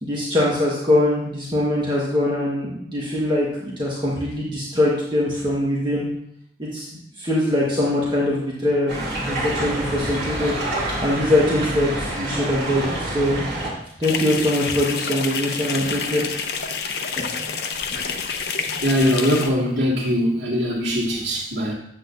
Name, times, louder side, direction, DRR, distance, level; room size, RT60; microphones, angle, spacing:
voice 1, 0.0-6.1 6.6-6.9 7.2-8.9 9.3-10.5 11.0-13.4 14.0-16.2 17.2-17.3, left 1 dB, 25° right, -6 dB, 1.5 m, -22 dB
sound 1, 8.9-13.7, right 1 dB, 55° right, 3.1 m, -27 dB
sound 2, 14.0-19.5, left 5 dB, 60° left, 0.6 m, -28 dB
voice 2, 18.8-21.7, equal, 70° right, -10 dB, 2.1 m, -21 dB
8.2 x 7.9 x 2.7 m, 0.73 s
head